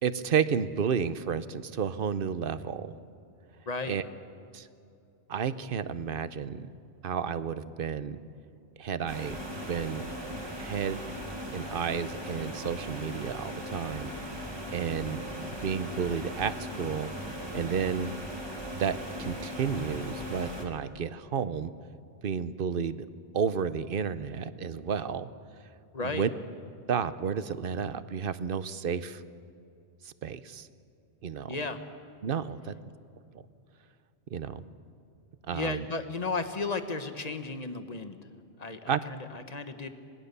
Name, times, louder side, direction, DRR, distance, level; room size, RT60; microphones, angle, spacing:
voice 1, 0.0-3.0 3.9-4.0 4.5-4.7 5.3-6.7 7.0-8.2 8.8-10.1 10.6-11.0 11.5-14.1 14.7-17.1 17.5-18.1 18.7-21.7 22.2-23.1 23.3-25.3 26.0-26.3 26.9-29.2 30.0-30.7 31.2-31.5 32.2-32.7 34.3-34.6 35.5-35.9 38.9-39.0, right 7 dB, 55° right, 14 dB, 0.9 m, -31 dB
sound 1, 9.1-20.7, equal, 20° right, 2.5 m, -38 dB
voice 2, 25.9-26.2 31.5-31.8 35.5-38.2 38.6-39.9, left 3 dB, 35° left, 9 dB, 1.3 m, -34 dB
26.0 x 20.0 x 6.8 m, 2.6 s
omnidirectional pair, 1.2 m